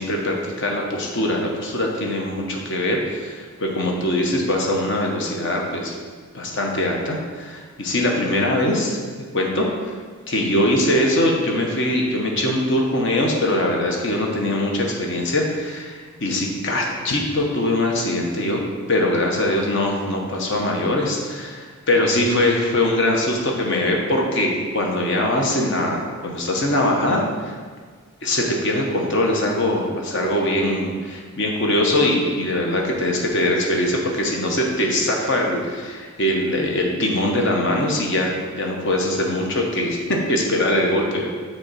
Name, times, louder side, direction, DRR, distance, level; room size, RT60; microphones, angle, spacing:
voice 1, 0.0-5.9 6.3-9.0 9.3-9.7 10.3-18.6 18.9-27.5 28.2-41.3, left 1 dB, 55° left, 0 dB, 1.1 m, -22 dB
6.4 x 4.3 x 5.7 m, 1.5 s
head